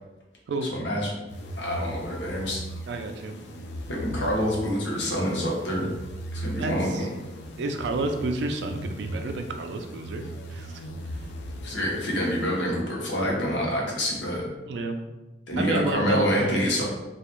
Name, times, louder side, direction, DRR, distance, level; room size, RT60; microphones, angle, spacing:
voice 1, 0.7-1.1 1.5-2.6 3.9-5.9 6.3-7.1 11.6-14.4 15.5-16.8, equal, 85° left, -3 dB, 0.7 m, -27 dB
sound 1, 1.3-13.0, right 1 dB, 70° left, 0.3 m, -38 dB
voice 2, 2.9-3.4 6.6-7.1 7.6-10.8 14.6-15.0 15.6-16.8, right 3 dB, 75° right, 5 dB, 0.3 m, -30 dB
2.3 x 2.1 x 2.9 m, 1.1 s
head